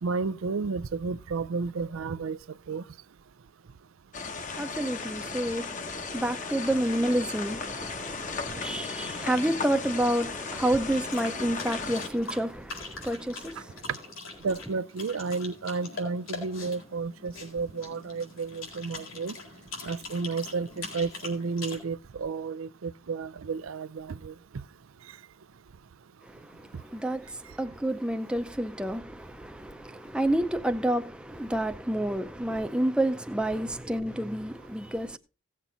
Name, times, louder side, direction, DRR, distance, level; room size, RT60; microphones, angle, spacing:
voice 1, 0.0-2.4 2.7-2.8 14.4-19.3 19.8-24.3, right 4 dB, 90° right, 0.5 m, -32 dB
sound 1, 4.1-12.1, left 4 dB, 40° left, 0.9 m, -36 dB
voice 2, 4.5-13.8 26.2-35.2, right 1 dB, 5° right, 0.6 m, -29 dB
sound 2, 10.9-21.8, left 3 dB, 90° left, 4.2 m, -42 dB
16.5 x 7.5 x 3.9 m
head